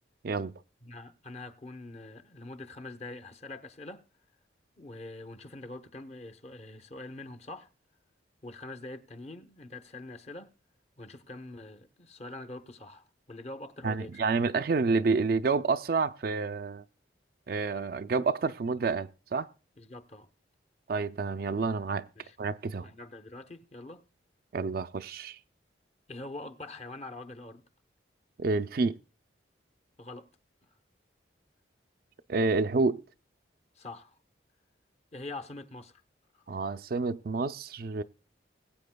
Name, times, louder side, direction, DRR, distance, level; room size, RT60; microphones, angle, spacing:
voice 1, 0.8-4.1 4.8-7.7 8.4-10.5 11.0-14.5 19.8-20.3 22.2-22.4 22.8-24.0 26.1-27.6 30.0-30.3 33.7-34.2 35.1-36.0 36.3-36.4, left 2 dB, 35° left, 0.9 m, -44 dB
voice 2, 13.8-16.8 17.5-19.5 20.9-22.1 22.4-22.9 24.5-25.4 28.4-29.0 32.3-33.0 36.5-38.0, right 4 dB, 50° right, 0.4 m, -29 dB
21.0 x 8.5 x 2.2 m
head